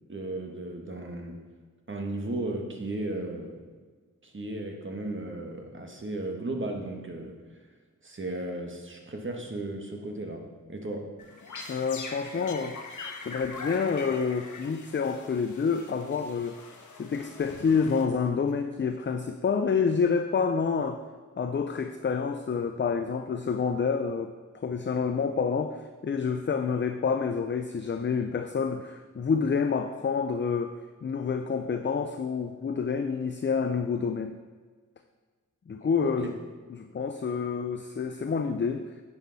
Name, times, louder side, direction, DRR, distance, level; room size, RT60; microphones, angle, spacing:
voice 1, 0.1-1.4 1.9-3.6 4.2-7.4 8.0-11.1 35.8-36.3, right 2 dB, 40° right, 2 dB, 1.6 m, -35 dB
sound 1, 11.2-18.5, left 4 dB, 65° left, 1.2 m, -43 dB
voice 2, 11.7-16.6 17.0-21.0 21.4-30.7 31.0-34.4 35.7-36.3 36.8-38.9, left 5 dB, 35° left, 7 dB, 0.5 m, -28 dB
10.0 x 7.3 x 4.1 m, 1.4 s
wide cardioid pair, 75°, 32 cm